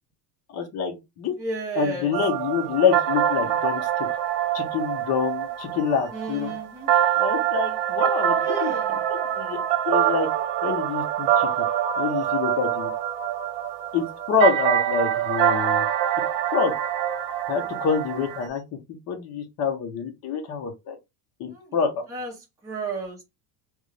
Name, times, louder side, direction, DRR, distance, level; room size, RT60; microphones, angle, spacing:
voice 1, 0.5-1.3 1.7-3.9 4.5-6.5 7.2-10.3 10.6-11.5 12.0-12.9 13.9-15.9 16.5-16.7 17.5-18.6 19.1-21.0 21.4-21.9, left 6 dB, 40° left, 1.0 m, -26 dB
voice 2, 1.4-2.1 6.1-6.9 8.4-8.9 21.5-21.6 22.1-22.3 22.6-23.2, right 3 dB, 10° right, 1.0 m, -32 dB
sound 1, 2.1-18.5, right 10 dB, 75° right, 0.8 m, -25 dB
3.5 x 2.6 x 3.3 m
cardioid pair, 170°, 42 cm